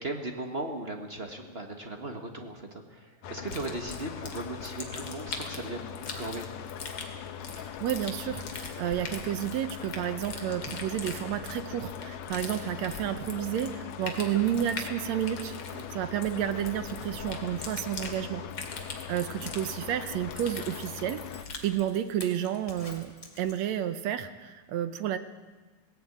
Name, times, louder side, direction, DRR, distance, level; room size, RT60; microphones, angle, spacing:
voice 1, 0.0-6.5 15.7-15.9, right 2 dB, 35° right, 3 dB, 1.1 m, -37 dB
sound 1, 3.2-21.4, left 8 dB, 70° left, 2.1 m, -41 dB
sound 2, 3.5-21.7, left 4 dB, 45° left, 3.0 m, -42 dB
voice 2, 7.6-18.4 19.1-21.2 21.6-25.2, right 11 dB, 70° right, 11 dB, 2.0 m, -31 dB
Zipper (clothing), 19.5-24.0 24.3-24.4, left 2 dB, 15° left, 1.8 m, -49 dB
18.0 x 17.0 x 8.8 m, 1.3 s
omnidirectional pair, 3.4 m